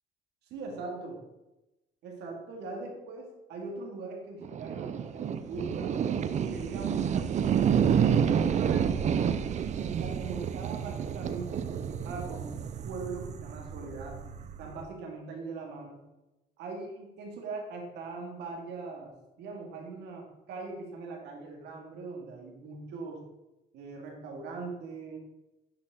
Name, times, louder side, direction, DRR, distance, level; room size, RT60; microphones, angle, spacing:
voice 1, 0.5-1.2 2.0-5.9 6.3-7.6 8.0-9.3 9.8-12.5 12.8-14.2 14.6-16.0 16.6-23.2 23.7-25.2, right 3 dB, 80° right, 0 dB, 2.0 m, -41 dB
sound 1, 4.4-14.8, right 8 dB, 45° right, 0.5 m, -29 dB
9.9 x 4.3 x 3.7 m, 0.97 s
cardioid pair, 110°, 17 cm